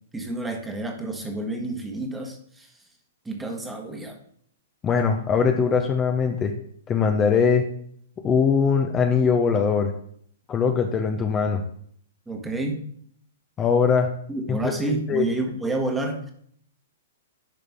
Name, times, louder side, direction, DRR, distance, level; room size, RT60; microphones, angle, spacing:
voice 1, 0.1-2.7 3.2-4.2 12.3-12.9 14.3-16.3, right 2 dB, 10° right, 3 dB, 1.4 m, -29 dB
voice 2, 4.8-6.5 6.9-7.6 8.2-9.9 10.5-11.6 13.6-14.1 14.5-15.2, left 6 dB, 20° left, 4 dB, 0.8 m, -21 dB
10.5 x 5.1 x 3.6 m, 0.64 s
hypercardioid pair, 130°, 0 cm